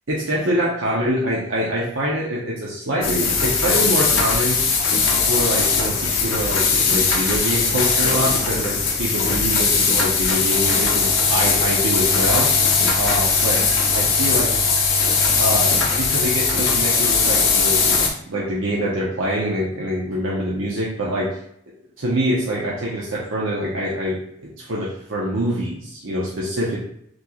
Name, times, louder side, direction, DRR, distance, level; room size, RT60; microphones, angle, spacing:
voice 1, 0.1-4.6 5.2-12.5 13.0-13.6 13.9-14.5 15.4-21.3 22.0-26.8, equal, 80° right, -5 dB, 0.9 m, -25 dB
sound 1, 3.0-18.1, left 4 dB, 85° left, 1.1 m, -19 dB
6.4 x 3.1 x 2.4 m, 0.71 s
head